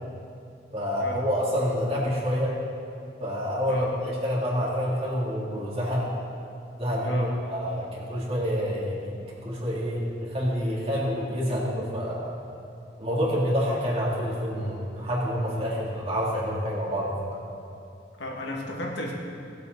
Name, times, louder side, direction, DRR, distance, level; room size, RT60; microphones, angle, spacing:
voice 1, 0.7-2.6 3.2-6.0 6.8-9.1 9.4-12.3 13.0-17.2, equal, 35° right, -5 dB, 2.9 m, -27 dB
voice 2, 18.2-19.1, equal, 70° left, -1 dB, 2.0 m, -33 dB
19.5 x 8.0 x 4.0 m, 2.6 s
head